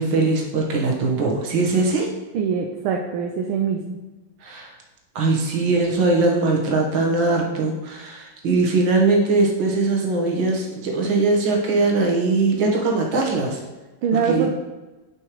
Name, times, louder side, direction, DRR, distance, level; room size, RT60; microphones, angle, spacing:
voice 1, 0.0-2.1 4.4-4.8 5.2-13.6 14.2-14.5, right 3 dB, 65° right, -1 dB, 2.0 m, -21 dB
voice 2, 2.3-4.0 14.0-14.5, right 6 dB, 80° right, 1 dB, 1.5 m, -23 dB
10.0 x 5.6 x 3.1 m, 1.1 s
omnidirectional pair, 2.3 m